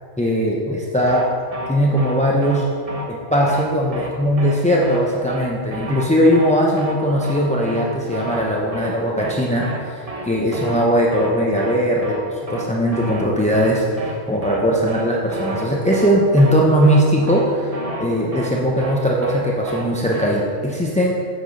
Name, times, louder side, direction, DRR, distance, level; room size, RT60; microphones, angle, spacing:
voice 1, 0.2-1.3 1.7-2.7 3.1-21.2, equal, 10° left, -3 dB, 0.4 m, -19 dB
sound 1, 1.1-1.2 1.5-1.7 2.0-2.1 2.4-2.6 2.9-3.0 3.3-3.7 3.9-4.1 4.4-4.5 4.8-5.0 5.3-5.4 5.7-6.0 6.3-6.5 6.8-7.0 7.2-7.4 7.7-7.9 8.1-8.4 8.7-8.9 9.2-9.4 9.6-9.8 10.1-10.3 10.5-10.9 11.1-11.3 11.6-11.7 12.0-12.2 12.5-12.6 12.9-13.3 13.5-13.7 14.0-14.1 14.4-14.6 14.9-15.0 15.3-15.7 15.9-16.1 16.4-16.5 16.8-17.0 17.3-17.4 17.7-18.0 18.3-18.5 18.8-19.0 19.2-19.4 19.7-19.9 20.1-20.3, right 2 dB, 30° right, 0.9 m, -31 dB
8.4 x 6.0 x 5.2 m, 2.3 s
omnidirectional pair, 1.4 m